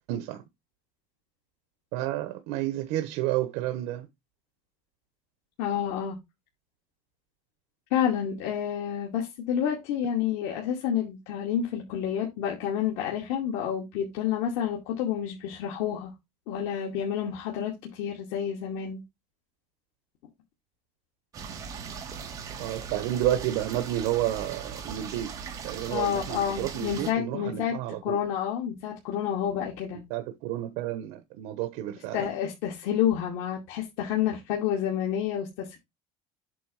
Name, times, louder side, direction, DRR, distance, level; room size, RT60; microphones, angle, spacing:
voice 1, 0.1-0.4 1.9-4.1 22.6-25.3 25.6-28.2 30.1-32.2, right 13 dB, 75° right, 1.1 m, -30 dB
voice 2, 5.6-6.2 7.9-16.1 16.5-19.0 25.9-27.7 28.0-30.0 32.1-35.8, left 9 dB, 85° left, 2.4 m, -29 dB
sound 1, 21.3-27.1, right 6 dB, 30° right, 1.6 m, -39 dB
8.4 x 3.3 x 5.8 m
cardioid pair, 170°, 12 cm